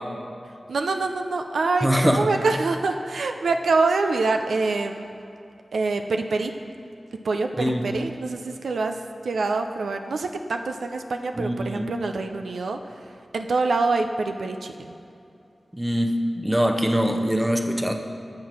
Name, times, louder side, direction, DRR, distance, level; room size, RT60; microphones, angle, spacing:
voice 1, 0.7-5.1 5.7-6.5 7.2-12.8 13.3-15.0, right 3 dB, 90° right, 5 dB, 0.4 m, -25 dB
voice 2, 1.8-2.3 7.6-7.8 11.3-11.9 15.7-17.9, equal, 10° right, 4 dB, 0.8 m, -23 dB
7.4 x 6.4 x 6.0 m, 2.6 s
cardioid pair, 50°, 0 cm